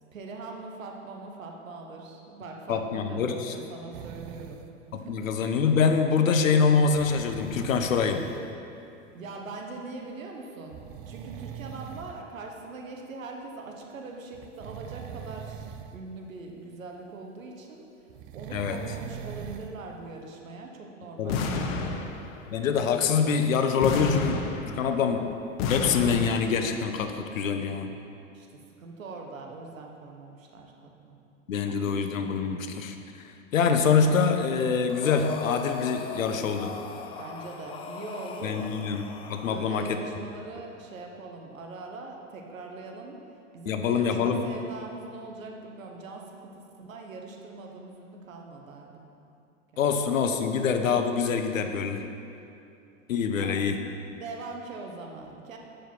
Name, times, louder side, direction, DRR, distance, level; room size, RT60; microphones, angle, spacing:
voice 1, 0.1-5.4 9.1-17.9 18.3-22.0 28.3-28.5 28.8-31.2 31.7-31.9 37.2-38.8 39.5-43.2 43.5-49.0 49.7-49.8 53.4-53.6 54.2-55.6, right 3 dB, 85° right, 1 dB, 1.2 m, -42 dB
voice 2, 2.7-3.5 5.1-8.2 18.5-18.8 21.2-21.4 22.5-24.4 24.7-25.3 25.7-27.9 31.5-33.0 33.5-36.7 38.4-39.0 39.3-40.0 43.7-44.4 49.8-52.0 53.1-53.8, left 6 dB, 85° left, 6 dB, 0.8 m, -25 dB
sound 1, 3.9-4.7 7.0-8.4 9.8-9.9 10.7-12.2 12.9-13.0 14.3-16.0 16.3-16.5 18.1-19.8 20.3-20.4, right 9 dB, 45° right, 0.5 m, -41 dB
sound 2, 21.3-22.6 23.8-25.1 25.6-26.7, left 4 dB, 50° left, 0.9 m, -30 dB
Breathing, 34.9-39.8, left 5 dB, 15° left, 0.3 m, -39 dB
6.9 x 5.0 x 5.9 m, 2.7 s
hypercardioid pair, 95°, 39 cm